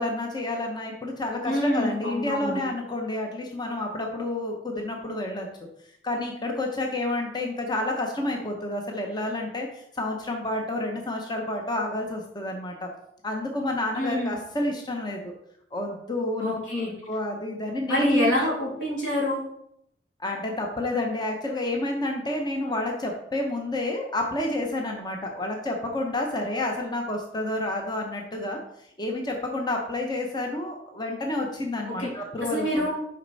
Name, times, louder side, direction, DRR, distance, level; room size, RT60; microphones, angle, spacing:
voice 1, 0.0-5.5 6.0-12.9 13.2-15.3 15.7-18.5 20.2-28.6 29.0-32.8, left 1 dB, 25° left, 2 dB, 0.9 m, -29 dB
voice 2, 1.4-2.6 13.9-14.4 16.4-16.9 17.9-19.4 31.9-32.1 32.4-32.9, left 1 dB, 90° left, -4 dB, 3.0 m, -26 dB
6.6 x 5.6 x 4.1 m, 0.74 s
head